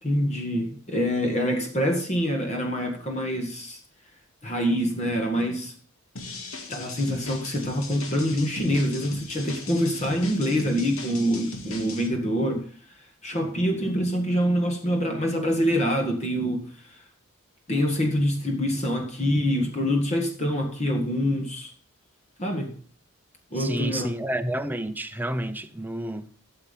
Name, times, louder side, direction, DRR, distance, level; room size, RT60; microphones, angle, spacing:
voice 1, 0.0-3.8 4.4-5.7 6.7-12.7 13.2-17.0 17.7-21.7 22.4-22.7 23.5-24.1, equal, 30° left, 1.7 m, -25 dB
sound 1, 6.2-12.1, left 3 dB, 75° left, 2.3 m, -39 dB
voice 2, 23.5-26.3, right 1 dB, 10° right, 0.7 m, -30 dB
13.0 x 7.2 x 5.2 m
head